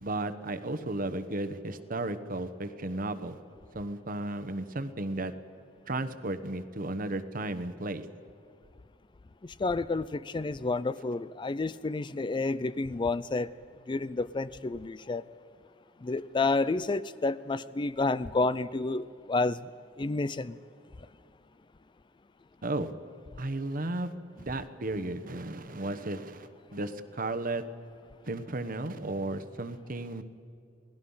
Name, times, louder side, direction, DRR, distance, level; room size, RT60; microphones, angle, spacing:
voice 1, 0.0-3.4 3.7-5.3 5.9-8.0 22.6-22.9 23.4-27.6 28.3-30.2, right 2 dB, 50° right, 10 dB, 1.1 m, -34 dB
voice 2, 9.4-13.5 13.9-15.2 16.0-19.7 20.0-20.6, left 3 dB, 25° left, 16 dB, 0.4 m, -30 dB
28.0 x 19.0 x 5.6 m, 2.5 s
head